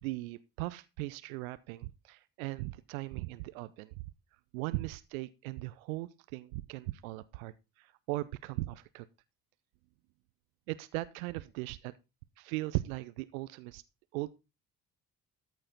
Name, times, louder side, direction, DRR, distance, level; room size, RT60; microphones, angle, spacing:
voice 1, 0.0-4.0 4.5-9.1 10.7-11.9 12.4-13.8 14.1-14.3, right 19 dB, 65° right, 0.7 m, -38 dB
13.5 x 7.7 x 4.1 m
figure-of-eight pair, 50°, 45 cm